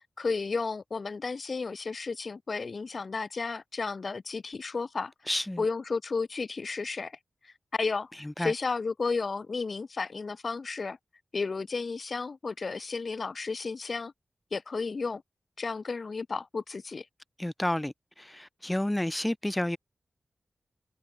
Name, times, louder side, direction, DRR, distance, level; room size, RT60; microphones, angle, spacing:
voice 1, 0.2-5.1 5.6-7.2 7.4-11.0 11.3-14.1 14.5-15.2 15.6-17.1, left 4 dB, 55° left, 4.7 m, -33 dB
voice 2, 5.3-5.6 8.2-8.5 17.4-19.8, left 1 dB, 10° left, 2.5 m, -30 dB
cardioid pair, 65°, 0 cm